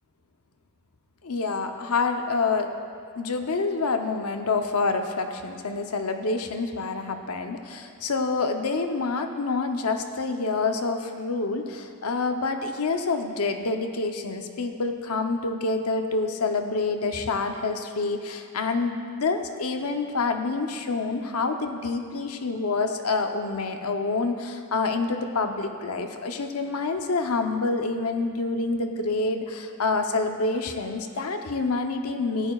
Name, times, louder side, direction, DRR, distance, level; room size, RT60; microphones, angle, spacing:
voice 1, 1.2-2.7 3.2-32.5, left 3 dB, 75° left, 5 dB, 0.7 m, -27 dB
16.0 x 11.0 x 2.4 m, 2.2 s
head